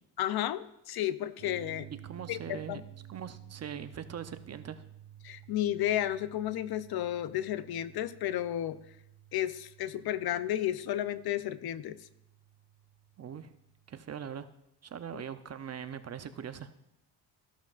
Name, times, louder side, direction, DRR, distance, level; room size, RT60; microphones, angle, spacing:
voice 1, 0.2-1.9 2.3-2.8 5.2-8.8 9.3-12.0, left 12 dB, 60° left, 14 dB, 0.6 m, -32 dB
sound 1, 1.4-14.3, right 11 dB, 65° right, 2.5 m, -53 dB
voice 2, 2.0-2.8 3.1-4.8 13.2-13.5 13.9-14.5 14.8-16.7, right 8 dB, 40° right, 10 dB, 0.7 m, -41 dB
14.5 x 11.5 x 2.5 m, 0.81 s
cardioid pair, 125°, 42 cm